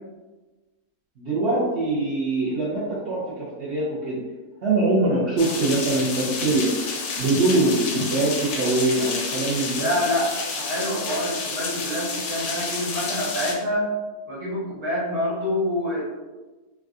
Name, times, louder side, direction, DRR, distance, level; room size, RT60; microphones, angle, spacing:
voice 1, 1.2-4.2 4.6-6.7 7.2-9.9, right 2 dB, 60° right, -7 dB, 0.8 m, -23 dB
sound 1, 5.4-13.5, left 4 dB, 85° left, 1.1 m, -30 dB
voice 2, 9.7-10.3 10.5-13.9 14.3-16.0, left 1 dB, 90° right, -10 dB, 1.7 m, -26 dB
3.5 x 2.2 x 2.4 m, 1.2 s
omnidirectional pair, 1.6 m